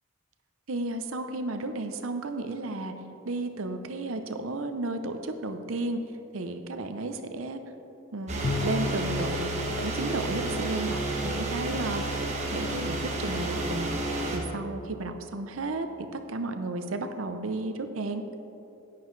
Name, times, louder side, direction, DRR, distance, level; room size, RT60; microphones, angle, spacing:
voice 1, 0.7-2.9 3.2-6.0 6.3-7.6 8.1-9.5 9.8-12.2 12.5-14.0 14.3-15.9 16.1-18.2, right 2 dB, 75° right, 7 dB, 0.7 m, -33 dB
sound 1, 8.3-14.4, right 1 dB, 35° right, 1.2 m, -31 dB
Bowed string instrument, 8.4-11.1, left 3 dB, 35° left, 0.4 m, -35 dB
10.5 x 9.4 x 3.2 m, 2.9 s
head